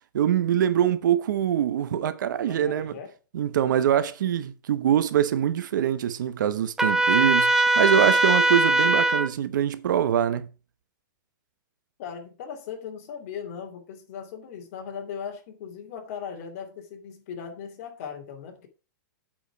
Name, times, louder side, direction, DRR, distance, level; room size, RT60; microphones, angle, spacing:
voice 1, 0.1-2.9 3.3-10.5, right 10 dB, 70° right, 0.9 m, -24 dB
voice 2, 2.4-3.1 12.0-18.7, left 7 dB, 45° left, 2.6 m, -38 dB
Trumpet, 6.8-9.3, right 2 dB, 5° right, 0.6 m, -20 dB
8.6 x 5.0 x 6.0 m
hypercardioid pair, 155°, 10 cm